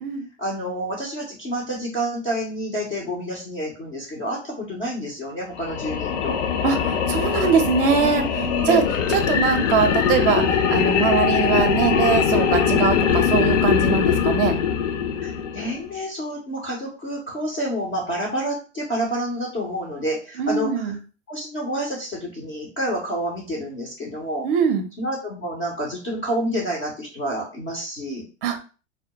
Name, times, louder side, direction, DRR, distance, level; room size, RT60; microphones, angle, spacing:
voice 1, 0.4-6.4 8.0-9.0 15.2-21.0 21.3-24.5 25.0-28.3, equal, 15° left, -5 dB, 0.3 m, -29 dB
sound 1, 5.5-15.9, left 7 dB, 65° left, 0.5 m, -21 dB
voice 2, 6.6-8.2 8.7-14.6 20.4-21.0 24.4-24.9 28.4-28.6, right 6 dB, 45° right, 8 dB, 0.5 m, -22 dB
2.2 x 2.2 x 2.7 m, 0.35 s
hypercardioid pair, 110°, 39 cm